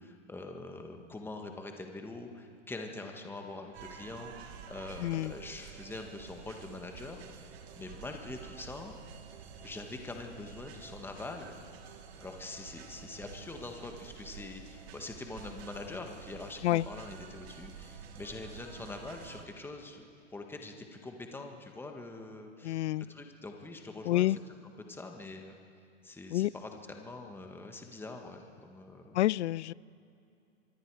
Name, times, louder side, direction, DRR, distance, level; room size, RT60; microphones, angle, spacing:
voice 1, 0.0-7.5 7.8-9.0 9.6-11.6 12.2-20.0 20.3-22.8 23.1-24.4 24.6-25.6 26.0-29.2, left 2 dB, 5° left, 3 dB, 1.7 m, -44 dB
sound 1, 3.7-19.4, right 7 dB, 55° right, 2.1 m, -49 dB
voice 2, 5.0-5.3 16.6-16.8 22.6-23.1 24.1-24.4 26.3-26.5 29.1-29.7, left 15 dB, 65° left, 24 dB, 0.5 m, -28 dB
24.5 x 22.0 x 4.9 m, 2.6 s
hypercardioid pair, 125°, 37 cm